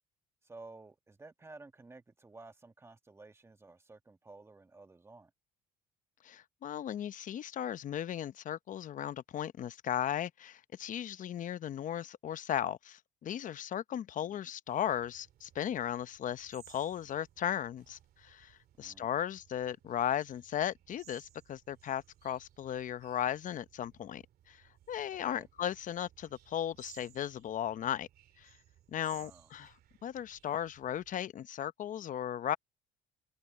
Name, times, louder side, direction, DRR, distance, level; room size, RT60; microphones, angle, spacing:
voice 1, 0.4-5.3 14.2-14.5 18.8-19.1 25.2-25.5 29.1-29.5, right 3 dB, 15° right, 1.3 m, -54 dB
voice 2, 6.2-28.1 28.4-28.5 28.9-29.7 30.0-32.6, left 10 dB, 50° left, 0.8 m, -36 dB
sound 1, 14.7-31.2, right 12 dB, 65° right, 2.7 m, -62 dB
cardioid pair, 110°, 17 cm